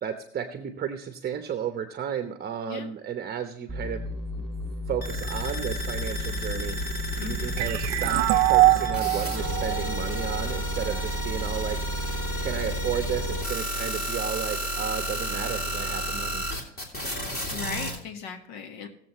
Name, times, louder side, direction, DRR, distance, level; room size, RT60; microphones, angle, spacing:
voice 1, 0.0-4.1 4.3-4.5 4.9-16.5, right 8 dB, 30° right, 7 dB, 0.9 m, -33 dB
sound 1, 3.7-9.6, left 2 dB, ahead, 2.5 m, -34 dB
sound 2, 5.0-18.0, equal, 30° left, 3.1 m, -31 dB
voice 2, 7.2-7.6 17.5-18.9, left 7 dB, 70° left, 5 dB, 1.7 m, -38 dB
sound 3, 7.6-11.0, right 20 dB, 80° right, 0.6 m, -23 dB
18.5 x 7.5 x 3.1 m, 0.75 s
supercardioid pair, 105°, 33 cm